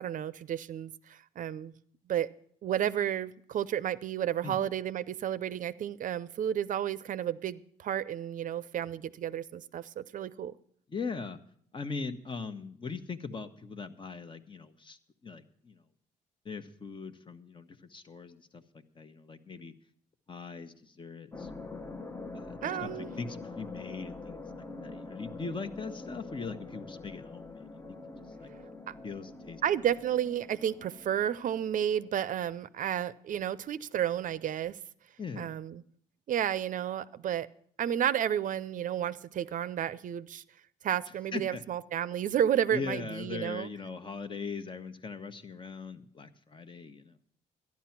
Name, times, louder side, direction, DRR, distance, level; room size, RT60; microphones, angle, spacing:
voice 1, 0.0-1.7 2.1-2.3 2.6-10.5 22.6-23.1 28.9-29.0 29.6-34.8 35.4-35.8 36.3-37.5 37.8-40.4 40.8-43.7, right 10 dB, 55° right, 0.6 m, -32 dB
voice 2, 10.9-11.4 11.7-15.0 15.2-15.8 16.4-19.7 20.3-21.5 22.3-28.0 28.4-28.5 29.0-29.6 35.2-35.5 41.3-41.6 42.7-47.2, left 4 dB, 30° left, 1.1 m, -40 dB
sound 1, 21.3-32.1, left 3 dB, 15° left, 0.9 m, -45 dB
12.5 x 10.5 x 5.9 m
supercardioid pair, 65°, 16 cm